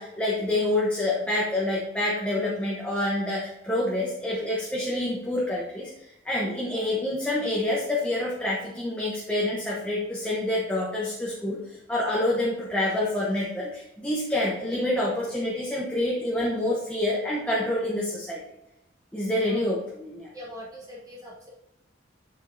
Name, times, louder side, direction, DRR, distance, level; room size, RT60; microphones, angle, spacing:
voice 1, 0.0-18.4 19.1-20.3, left 1 dB, 5° left, -5 dB, 0.9 m, -27 dB
voice 2, 20.3-21.5, equal, 20° right, -5 dB, 1.6 m, -42 dB
7.3 x 7.2 x 2.7 m, 0.89 s
head